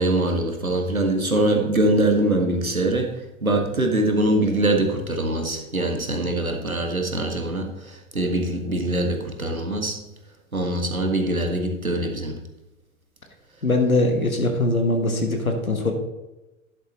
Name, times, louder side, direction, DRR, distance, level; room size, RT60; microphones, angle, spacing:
voice 1, 0.0-3.1 3.4-10.0 10.5-12.3, right 1 dB, 90° right, 3 dB, 1.7 m, -23 dB
voice 2, 13.6-15.9, left 2 dB, 90° left, 4 dB, 1.5 m, -21 dB
11.0 x 11.0 x 3.0 m, 1.0 s
figure-of-eight pair, 95°, 41 cm